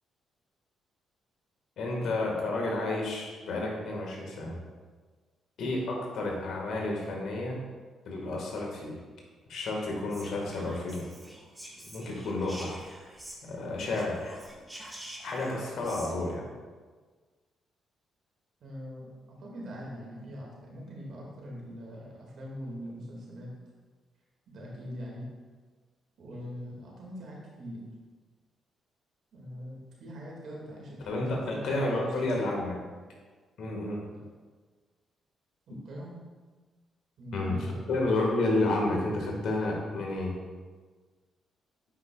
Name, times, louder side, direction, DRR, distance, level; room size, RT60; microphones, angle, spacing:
voice 1, 1.8-4.6 5.6-7.6 8.0-9.0 9.5-11.1 11.8-12.8 13.4-14.4 15.2-16.5 31.0-32.8 33.6-34.0 37.3-40.4, left 2 dB, 70° left, -1 dB, 1.6 m, -31 dB
Whispering, 10.1-13.6 13.9-16.1, right 1 dB, 15° right, 1.5 m, -46 dB
voice 2, 18.6-23.5 24.5-25.3 26.2-27.8 29.3-32.5 34.1-34.2 35.7-36.2 37.2-37.8, equal, 65° right, -3 dB, 1.9 m, -42 dB
9.3 x 5.1 x 2.3 m, 1.4 s
supercardioid pair, 55°, 0 cm